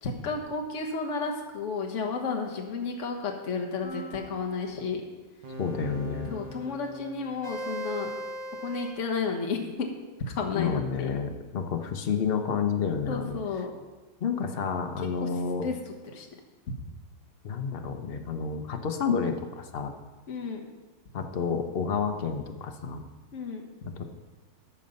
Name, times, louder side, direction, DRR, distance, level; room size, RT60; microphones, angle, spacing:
voice 1, 0.0-5.0 6.3-8.1 8.6-9.9 10.3-11.1 13.1-13.7 15.2-15.3 15.6-16.3 20.3-20.6 23.3-23.7, left 4 dB, 45° left, 2 dB, 1.4 m, -32 dB
sound 1, 3.8-4.7 5.4-8.9, right 1 dB, 75° right, 2.1 m, -39 dB
voice 2, 5.6-6.3 10.5-13.4 14.2-15.6 17.4-19.9 21.1-23.0 23.9-24.0, left 6 dB, 60° left, 5 dB, 0.5 m, -30 dB
14.0 x 5.6 x 5.3 m, 1.3 s
omnidirectional pair, 2.0 m